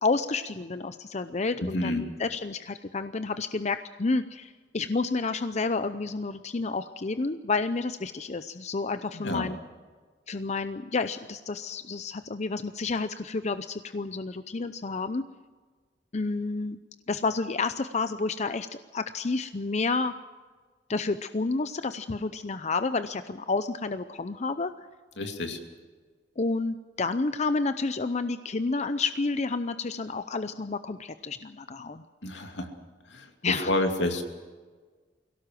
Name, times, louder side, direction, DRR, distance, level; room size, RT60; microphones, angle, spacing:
voice 1, 0.0-9.6 10.3-15.2 16.1-16.8 17.1-18.7 18.9-20.1 20.9-24.7 26.4-32.0 33.4-33.7, left 3 dB, 40° left, 11 dB, 0.6 m, -30 dB
voice 2, 1.6-2.1 9.1-9.5 25.2-25.6 32.2-32.7 33.1-34.2, left 1 dB, 80° left, 5 dB, 2.6 m, -29 dB
22.5 x 17.0 x 7.5 m, 1.4 s
head